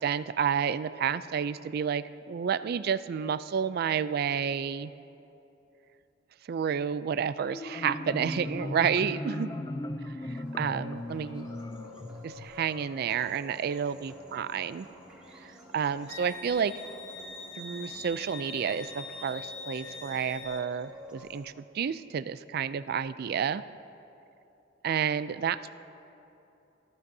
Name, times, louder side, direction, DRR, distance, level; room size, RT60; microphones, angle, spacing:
voice 1, 0.0-4.9 6.5-9.5 10.2-11.5 12.2-14.9 15.4-16.7 17.5-23.6 24.8-25.7, right 7 dB, 55° right, 15 dB, 0.3 m, -30 dB
Marimba xylophone, 7.4-12.9, left 1 dB, 20° left, 0.4 m, -37 dB
sound 1, 10.2-21.4, left 2 dB, 5° right, 2.3 m, -49 dB
Wind instrument woodwind instrument, 16.1-20.6, left 3 dB, 75° left, 1.1 m, -43 dB
19.0 x 14.0 x 2.7 m, 2.9 s
head